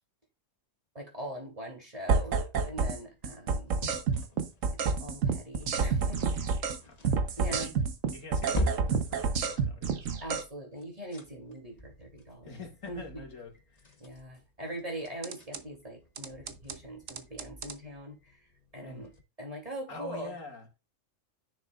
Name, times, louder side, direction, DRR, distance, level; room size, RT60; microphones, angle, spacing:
voice 1, 0.9-2.4 2.7-3.7 4.7-6.5 7.4-7.7 10.2-12.6 12.9-13.3 14.0-18.4 18.7-19.1 19.4-20.3, right 1 dB, 30° right, 2.9 m, -42 dB
sound 1, 2.1-3.0 3.2-6.8 7.0-10.4 15.2-15.6 16.2-16.7 17.1-17.7, right 5 dB, 85° right, 1.4 m, -29 dB
sound 2, 2.9-9.7 10.7-19.2, left 1 dB, 35° left, 1.3 m, -43 dB
voice 2, 8.1-10.1 12.4-13.8 18.8-19.1 19.9-20.7, left 3 dB, 85° left, 2.5 m, -45 dB
10.5 x 6.6 x 2.4 m
omnidirectional pair, 1.3 m